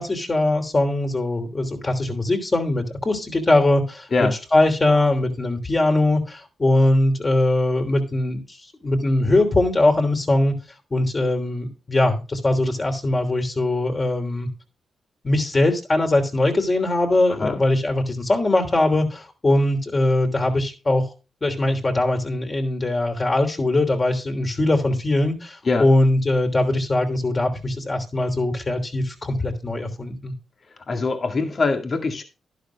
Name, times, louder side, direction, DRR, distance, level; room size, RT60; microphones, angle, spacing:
voice 1, 0.0-10.5 10.9-14.5 15.2-21.1 21.4-30.3, left 2 dB, 35° left, 3 dB, 3.1 m, -21 dB
voice 2, 30.9-32.2, left 3 dB, 55° left, 5 dB, 2.0 m, -23 dB
11.5 x 11.0 x 2.3 m, 0.31 s
cardioid pair, 55°, 0 cm